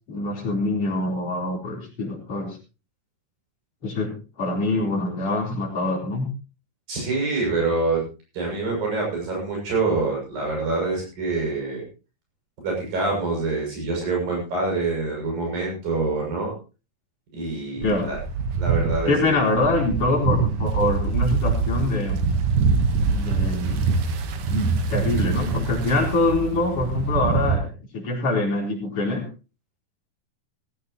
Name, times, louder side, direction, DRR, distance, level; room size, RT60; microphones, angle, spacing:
voice 1, 0.1-2.6 3.8-6.3 17.8-18.1 19.1-22.2 23.1-23.9 24.5-29.2, left 2 dB, 40° left, -1 dB, 4.9 m, -24 dB
voice 2, 6.9-8.0 8.3-11.8 12.6-16.5 17.3-18.2 18.6-19.2, right 3 dB, 80° right, -1 dB, 8.6 m, -26 dB
sound 1, 17.8-27.6, right 4 dB, 65° right, 2.7 m, -24 dB
16.5 x 15.0 x 3.1 m, 0.32 s
omnidirectional pair, 4.0 m